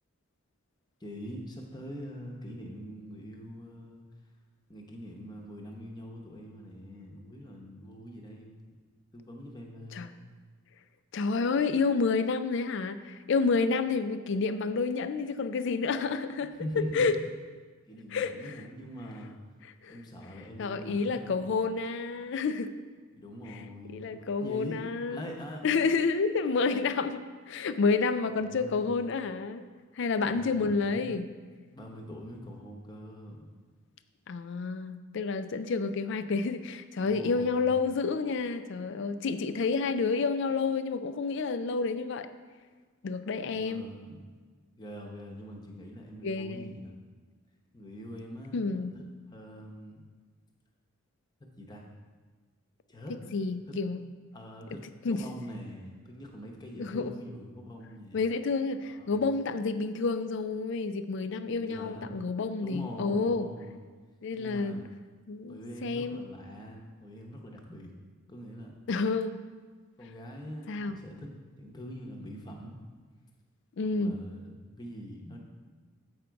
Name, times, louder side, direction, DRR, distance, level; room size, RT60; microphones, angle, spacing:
voice 1, 1.0-4.0 4.7-8.6 9.1-10.2 16.6-17.1 17.9-19.4 19.9-21.4 23.1-24.8 25.1-25.9 28.5-28.9 30.2-31.2 31.7-33.4 37.0-37.8 43.5-44.3 44.8-47.0 47.7-50.0 51.4-51.8 52.9-53.1 53.7-53.8 54.3-58.2 58.9-59.2 61.6-62.1 62.6-63.8 64.3-64.8 65.5-67.9 68.3-68.8 70.0-72.8 74.0-75.5, equal, 20° left, 0 dB, 0.8 m, -43 dB
voice 2, 11.1-16.5 16.9-17.1 18.1-18.6 19.8-19.9 20.6-22.7 23.5-23.6 23.9-25.2 25.6-29.7 29.9-31.3 34.3-42.3 43.0-43.9 46.2-46.7 48.5-48.9 53.1-54.0 55.0-55.2 56.8-57.1 58.1-63.5 64.2-64.8 65.3-66.3 68.9-69.4 70.7-71.0 73.8-74.2, left 4 dB, 55° left, 11 dB, 0.4 m, -29 dB
7.9 x 5.1 x 4.6 m, 1.4 s
head